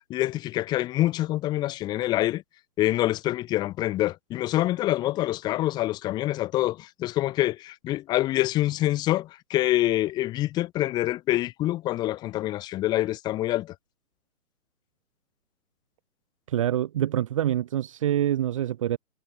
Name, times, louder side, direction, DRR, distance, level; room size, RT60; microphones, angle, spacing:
voice 1, 0.1-2.4 2.8-13.7, left 15 dB, 10° left, 4.3 m, -26 dB
voice 2, 16.5-19.0, right 11 dB, 20° right, 2.9 m, -25 dB
hypercardioid pair, 165°, 45 cm